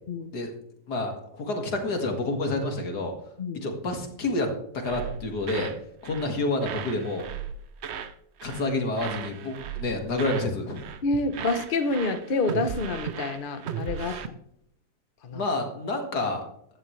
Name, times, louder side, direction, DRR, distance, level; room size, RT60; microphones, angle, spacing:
voice 1, 0.9-3.1 3.6-5.7 6.0-7.3 8.4-10.9 14.0-14.2 15.3-16.4, left 2 dB, 65° left, 3 dB, 2.5 m, -29 dB
sound 1, 4.9-5.8 6.0-6.3 6.6-8.1 8.4-8.7 9.0-10.5 10.8-11.1 11.3-14.3, right 7 dB, 60° right, 0.7 m, -36 dB
voice 2, 11.0-14.4 15.2-15.4, left 2 dB, 40° left, 8 dB, 0.8 m, -28 dB
14.5 x 10.5 x 3.2 m, 0.72 s
omnidirectional pair, 1.9 m